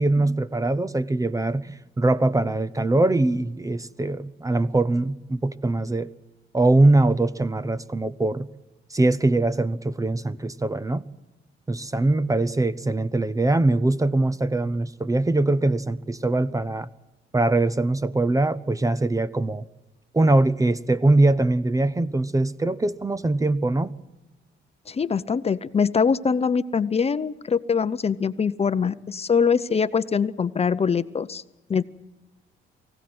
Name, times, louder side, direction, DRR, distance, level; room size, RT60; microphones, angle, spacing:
voice 1, 0.0-6.1 6.5-8.5 8.9-11.0 11.7-16.9 17.3-19.7 20.1-23.9, right 2 dB, 15° right, 0.7 m, -22 dB
voice 2, 24.9-31.4 31.7-31.8, left 6 dB, 30° left, 0.7 m, -23 dB
23.5 x 16.5 x 7.8 m
cardioid pair, 90°, 20 cm